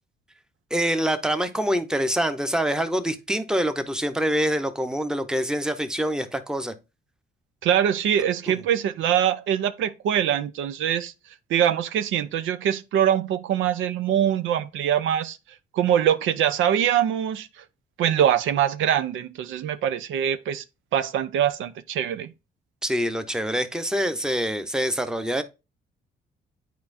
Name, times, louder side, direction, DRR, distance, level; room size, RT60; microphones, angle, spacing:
voice 1, 0.7-6.7 8.5-8.6 22.8-25.4, equal, 5° right, 0.8 m, -25 dB
voice 2, 7.6-11.1 11.5-15.4 15.7-17.5 18.0-20.6 20.9-22.3, right 10 dB, 80° right, 0.5 m, -23 dB
9.4 x 4.4 x 2.6 m
cardioid pair, 90°, 20 cm